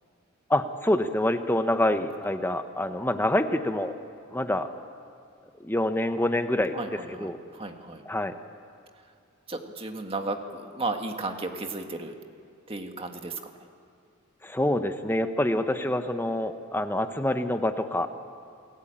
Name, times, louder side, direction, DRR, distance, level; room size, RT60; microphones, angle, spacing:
voice 1, 0.5-3.9 4.3-4.7 5.6-7.4 8.1-8.3 14.4-18.1, left 1 dB, 10° left, 8 dB, 1.0 m, -26 dB
voice 2, 6.7-8.0 9.5-12.1 12.7-13.4, right 2 dB, 25° right, 5 dB, 1.8 m, -34 dB
29.0 x 18.0 x 8.9 m, 2.3 s
head